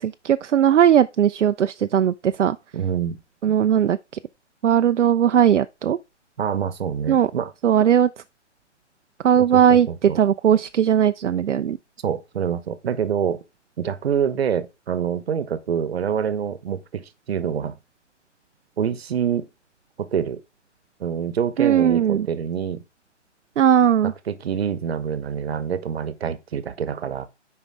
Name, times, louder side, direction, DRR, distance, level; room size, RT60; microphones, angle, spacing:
voice 1, 0.0-2.6 3.4-4.0 4.6-6.0 7.1-7.3 7.6-8.1 9.2-11.8 21.6-22.3 23.6-24.1, right 9 dB, 75° right, 0.6 m, -18 dB
voice 2, 2.7-3.2 6.4-7.5 9.4-10.2 12.0-13.4 13.8-17.8 18.8-19.5 20.0-20.4 21.0-22.8 24.0-27.3, right 8 dB, 55° right, 1.1 m, -26 dB
8.3 x 5.3 x 3.6 m
figure-of-eight pair, 140°, 36 cm